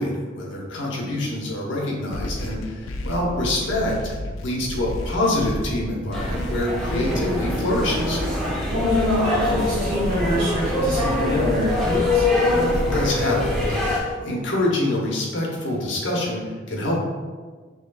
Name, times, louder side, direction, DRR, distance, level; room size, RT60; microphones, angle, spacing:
voice 1, 0.0-4.0 4.4-8.2 12.5-17.0, left 1 dB, 65° left, -2 dB, 1.0 m, -26 dB
sound 1, 2.1-14.1, left 1 dB, 85° left, 0.4 m, -32 dB
sound 2, 6.1-14.0, left 2 dB, 5° left, 0.9 m, -24 dB
voice 2, 8.7-12.3, left 1 dB, 75° right, -11 dB, 1.4 m, -25 dB
6.5 x 3.1 x 2.3 m, 1.4 s
head